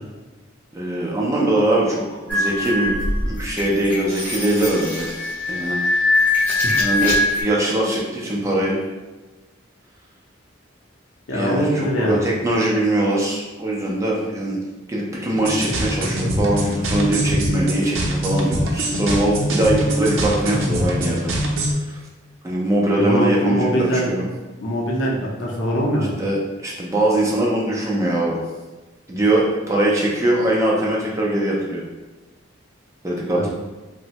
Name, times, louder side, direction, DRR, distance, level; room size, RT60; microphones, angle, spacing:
voice 1, 0.7-3.0 3.3-5.1 5.5-5.8 6.8-8.8 11.3-14.6 14.9-21.3 21.8-22.0 22.4-24.3 26.2-28.4 29.1-31.8 33.0-33.5, right 1 dB, 15° right, -4 dB, 0.4 m, -21 dB
sound 1, 2.3-7.4, left 2 dB, 10° left, 1.0 m, -22 dB
voice 2, 6.5-6.8 11.3-12.2 23.0-24.1 24.6-26.1 33.3-33.5, equal, 75° left, -2 dB, 0.6 m, -22 dB
sound 2, 15.4-21.7, equal, 85° right, 0.5 m, -23 dB
3.1 x 2.1 x 2.8 m, 1.2 s
head